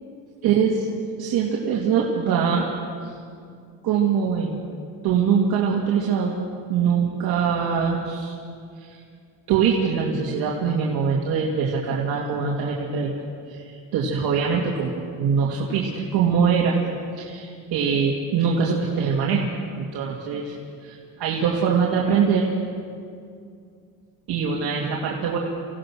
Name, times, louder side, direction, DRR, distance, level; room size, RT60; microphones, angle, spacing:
voice 1, 0.4-0.9 1.2-2.7 3.0-3.1 3.8-4.6 5.0-6.4 6.7-8.4 8.8-9.0 9.5-13.1 13.5-16.8 17.2-20.5 20.8-22.5 24.3-25.4, right 6 dB, 75° right, -3 dB, 2.5 m, -23 dB
26.0 x 17.5 x 6.3 m, 2.3 s
cardioid pair, 120°, 38 cm